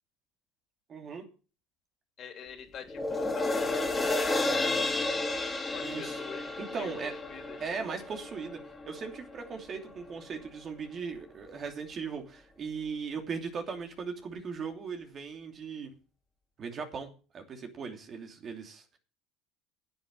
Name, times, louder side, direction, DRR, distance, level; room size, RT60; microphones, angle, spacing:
voice 1, 0.9-1.3 5.8-6.2 6.6-7.1 7.6-8.6 8.9-15.9 16.6-19.0, right 5 dB, 40° right, 5 dB, 2.8 m, -38 dB
voice 2, 2.2-4.6 5.7-6.5 6.7-6.9 7.3-7.6, left 7 dB, 50° left, 6 dB, 3.2 m, -46 dB
sound 1, 2.9-9.5 9.9-10.0, left 2 dB, 15° left, 3.0 m, -32 dB
9.6 x 8.4 x 7.5 m, 0.36 s
hypercardioid pair, 80°, 0 cm